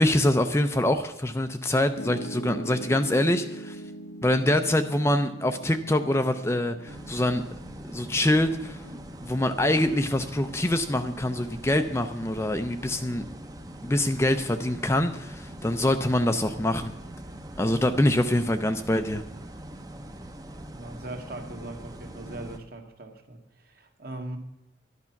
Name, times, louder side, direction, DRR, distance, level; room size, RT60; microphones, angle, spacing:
voice 1, 0.0-3.8 4.2-7.4 7.9-8.8 9.2-13.2 13.8-16.9 17.6-19.2, left 1 dB, 15° left, 0.5 m, -24 dB
Piano, 2.0-14.1, equal, 80° left, 0.9 m, -43 dB
sound 1, 6.9-22.6, right 1 dB, 20° right, 0.8 m, -42 dB
voice 2, 20.7-24.4, right 1 dB, 50° right, 1.7 m, -40 dB
12.0 x 11.0 x 5.8 m
head